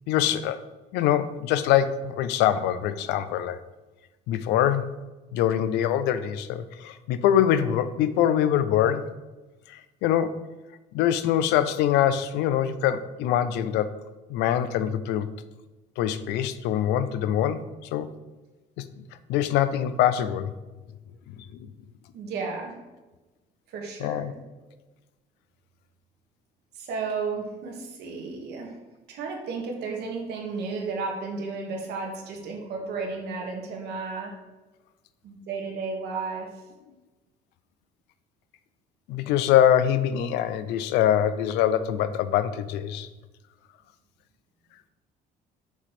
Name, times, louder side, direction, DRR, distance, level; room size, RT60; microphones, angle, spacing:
voice 1, 0.1-0.6 0.9-3.6 4.3-4.8 5.3-9.1 9.7-10.4 10.9-13.9 14.3-15.3 16.0-17.6 17.9-18.1 18.8-18.9 19.3-20.5 24.0-24.3 39.1-43.1, left 10 dB, 90° left, 13 dB, 0.5 m, -24 dB
voice 2, 22.1-22.8 23.7-24.3 26.7-28.8 29.1-34.4 35.2-36.6, right 4 dB, 75° right, 1 dB, 1.6 m, -33 dB
6.2 x 3.3 x 5.8 m, 1.1 s
cardioid pair, 110°, 17 cm